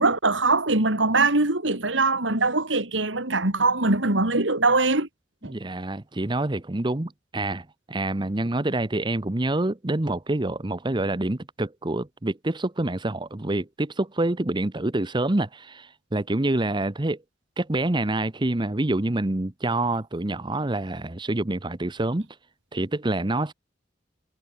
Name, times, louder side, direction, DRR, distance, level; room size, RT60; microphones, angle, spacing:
voice 1, 0.0-5.1 5.4-5.5, right 3 dB, 90° right, 3.7 m, -22 dB
voice 2, 5.5-17.2 17.6-22.3 22.7-23.5, right 2 dB, 25° right, 0.9 m, -27 dB
head